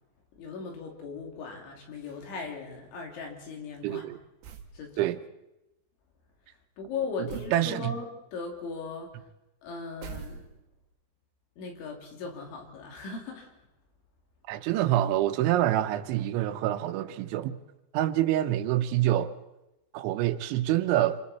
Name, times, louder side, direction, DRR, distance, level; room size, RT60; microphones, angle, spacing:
voice 1, 0.3-4.1 4.7-5.1 6.8-9.2 9.6-10.5 11.6-13.5, left 4 dB, 85° left, 2 dB, 5.3 m, -38 dB
voice 2, 3.8-4.2 5.0-5.2 7.5-7.9 14.5-17.6 17.9-19.3 19.9-21.2, right 13 dB, 90° right, 10 dB, 3.3 m, -26 dB
sound 1, 4.4-4.8 7.3-7.6 10.0-10.8, right 7 dB, 75° right, 3.5 m, -42 dB
27.0 x 26.0 x 4.3 m, 0.95 s
omnidirectional pair, 5.2 m